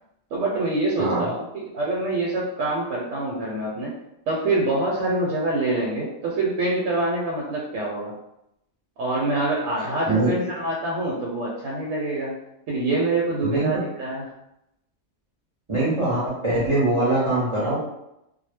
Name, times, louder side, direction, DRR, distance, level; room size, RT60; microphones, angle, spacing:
voice 1, 0.3-3.9 4.3-8.1 9.0-12.3 12.7-14.2, right 2 dB, 75° right, -4 dB, 0.9 m, -25 dB
voice 2, 15.7-17.7, right 2 dB, 30° right, -8 dB, 0.6 m, -22 dB
2.1 x 2.1 x 3.2 m, 0.84 s
omnidirectional pair, 1.3 m